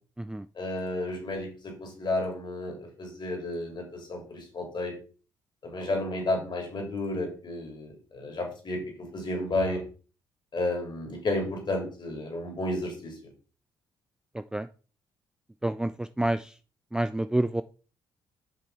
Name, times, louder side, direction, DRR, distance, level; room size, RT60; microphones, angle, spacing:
voice 1, 0.6-4.9 5.6-9.8 10.5-13.1, left 2 dB, 40° left, 2 dB, 3.3 m, -32 dB
voice 2, 14.3-14.7 15.6-16.5 16.9-17.6, right 1 dB, 5° right, 12 dB, 0.4 m, -28 dB
6.8 x 5.4 x 4.1 m, 0.37 s
hypercardioid pair, 45°, 11 cm